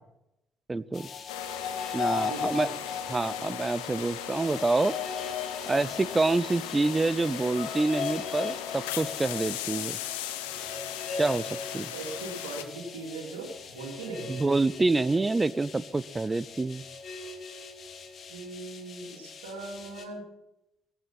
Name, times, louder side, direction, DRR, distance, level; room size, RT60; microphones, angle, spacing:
voice 1, 0.7-1.1 1.9-2.7 3.1-4.9 5.7-10.0 11.2-11.9 14.3-16.9, right 3 dB, 20° right, 19 dB, 0.7 m, -27 dB
sound 1, 0.9-20.0, left 6 dB, 45° left, 2.7 m, -38 dB
sound 2, 1.3-12.6, left 11 dB, 75° left, 1.0 m, -38 dB
voice 2, 2.1-2.7 11.9-14.3 18.3-20.2, right 3 dB, 75° right, -2 dB, 3.4 m, -39 dB
17.5 x 15.0 x 4.3 m, 0.85 s
figure-of-eight pair, 50°, 0 cm